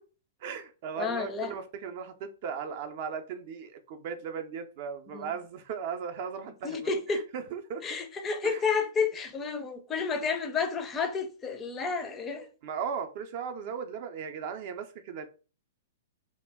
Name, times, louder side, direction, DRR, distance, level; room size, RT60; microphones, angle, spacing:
voice 1, 0.4-7.8 8.4-8.6 12.6-15.3, right 6 dB, 50° right, 0.4 m, -37 dB
voice 2, 1.0-1.5 5.1-5.3 6.6-7.3 7.8-12.5, left 5 dB, 20° left, 0.4 m, -31 dB
2.1 x 2.1 x 3.4 m
hypercardioid pair, 110°, 0 cm